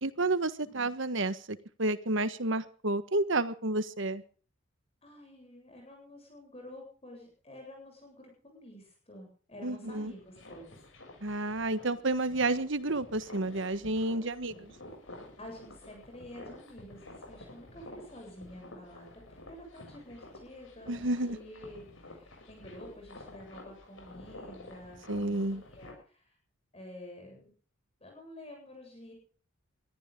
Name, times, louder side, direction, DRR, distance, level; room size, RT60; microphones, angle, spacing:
voice 1, 0.0-4.2 9.6-10.1 11.2-14.7 20.9-21.4 25.1-25.6, right 2 dB, 60° right, 13 dB, 1.5 m, -30 dB
voice 2, 5.0-10.8 15.4-26.4 26.7-27.5 28.0-29.1, left 1 dB, 30° left, 2 dB, 8.0 m, -49 dB
sound 1, 9.8-25.9, left 1 dB, 65° left, 7.4 m, -50 dB
23.0 x 14.5 x 3.8 m, 0.41 s
head